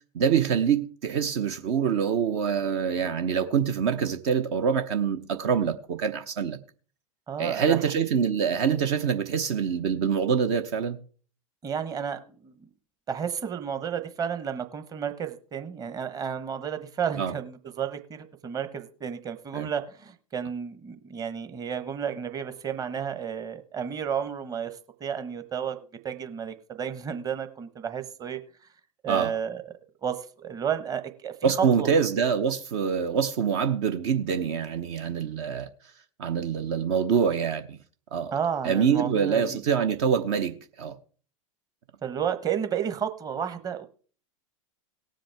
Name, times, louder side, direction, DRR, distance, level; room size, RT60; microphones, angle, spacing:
voice 1, 0.1-6.6 7.4-11.0 17.2-17.3 19.5-19.7 29.1-29.3 31.4-35.7 36.2-37.8 38.1-38.3 38.6-41.0, right 7 dB, 50° right, 0.9 m, -25 dB
voice 2, 7.3-7.8 11.6-12.7 13.1-28.4 29.0-29.6 30.0-31.9 38.3-39.6 42.0-43.9, right 7 dB, 20° right, 1.1 m, -32 dB
18.0 x 7.6 x 3.4 m
figure-of-eight pair, 90°, 18 cm